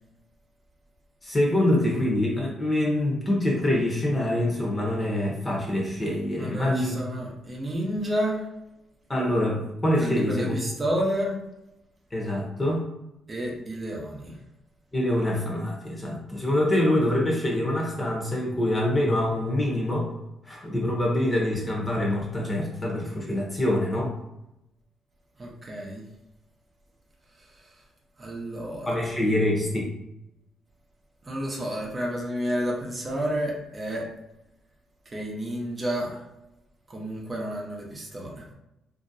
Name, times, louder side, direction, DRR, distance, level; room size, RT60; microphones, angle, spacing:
voice 1, 1.2-7.0 9.1-10.6 12.1-12.8 14.9-20.1 20.4-24.1 28.9-29.9, left 1 dB, 20° left, -2 dB, 0.9 m, -25 dB
voice 2, 6.4-8.5 10.0-11.4 13.3-14.4 25.4-26.0 27.6-27.7 28.2-29.0 31.2-34.1 35.1-36.2 36.9-38.4, equal, 30° right, -2 dB, 0.8 m, -30 dB
2.9 x 2.7 x 2.6 m, 0.89 s
cardioid pair, 90°, 0 cm